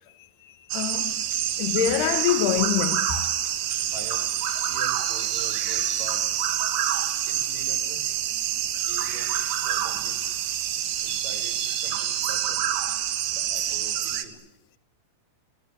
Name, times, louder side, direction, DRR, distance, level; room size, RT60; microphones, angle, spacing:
voice 1, 0.4-1.2 1.6-3.3 6.6-6.7 10.5-10.7, left 11 dB, 80° left, 3.2 m, -26 dB
nightbird amazonas close, 0.7-14.3, right 11 dB, 70° right, 3.3 m, -27 dB
voice 2, 3.9-4.3 4.6-6.3 7.3-8.0 8.8-10.2 11.0-12.6 13.3-14.5, right 4 dB, 55° right, 7.4 m, -44 dB
27.5 x 24.0 x 8.7 m
omnidirectional pair, 4.6 m